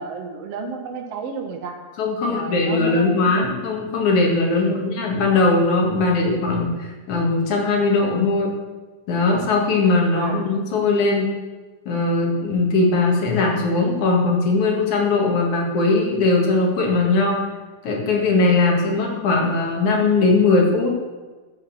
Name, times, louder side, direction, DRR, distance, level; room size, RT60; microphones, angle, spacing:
voice 1, 0.0-1.8 2.2-3.6 4.6-4.8 10.1-10.5, right 5 dB, 60° right, 3 dB, 2.0 m, -32 dB
voice 2, 2.0-6.7 7.1-8.5 9.1-11.3 11.9-17.4 17.8-21.0, left 3 dB, 65° left, -1 dB, 3.2 m, -19 dB
12.5 x 8.8 x 7.1 m, 1.3 s
omnidirectional pair, 3.7 m